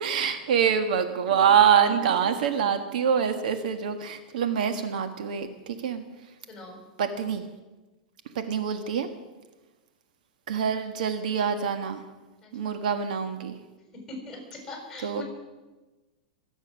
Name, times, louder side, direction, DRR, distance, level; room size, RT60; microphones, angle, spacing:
voice 1, 0.0-5.5 5.8-6.0 7.0-7.4 8.3-9.1 10.5-12.0 12.5-13.6 15.0-15.2, right 7 dB, 75° right, 8 dB, 1.5 m, -25 dB
voice 2, 6.5-6.8 10.7-10.9 12.4-12.8 14.1-15.2, left 2 dB, 10° left, 0 dB, 6.4 m, -42 dB
23.5 x 9.1 x 6.4 m, 1.2 s
supercardioid pair, 140°, 4 cm